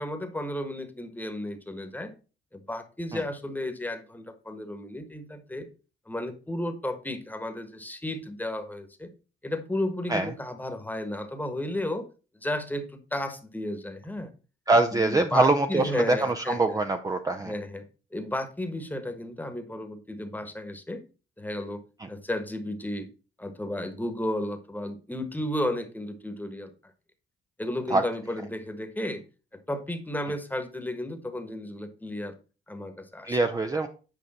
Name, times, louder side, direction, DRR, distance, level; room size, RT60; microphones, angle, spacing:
voice 1, 0.0-2.1 2.5-5.7 6.1-9.1 9.4-12.1 12.3-14.3 14.9-16.8 17.4-17.8 18.1-21.0 21.4-21.8 22.1-23.1 23.4-26.7 27.6-29.2 29.7-32.3 32.7-33.4, left 1 dB, 10° left, 8 dB, 1.3 m, -33 dB
voice 2, 14.7-17.5 22.0-22.1 27.9-28.0 33.2-33.9, right 2 dB, 20° right, 6 dB, 0.6 m, -24 dB
9.0 x 5.0 x 4.2 m, 0.35 s
cardioid pair, 90°, 20 cm